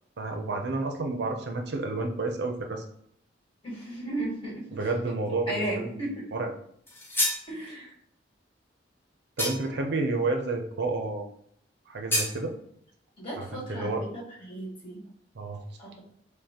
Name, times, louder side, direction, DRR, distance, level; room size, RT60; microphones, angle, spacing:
voice 1, 0.2-2.8 4.7-6.5 9.4-11.3 11.9-12.5 13.4-14.0 15.3-15.6, right 3 dB, 65° right, 4 dB, 0.5 m, -30 dB
voice 2, 3.6-4.8 5.5-6.2 7.5-7.9 13.2-15.0 15.8-16.0, right 1 dB, 30° left, -5 dB, 1.5 m, -35 dB
sound 1, 6.9-7.5 9.4-9.8 12.1-12.4, left 1 dB, 15° left, 0.7 m, -28 dB
5.2 x 2.1 x 2.8 m, 0.68 s
head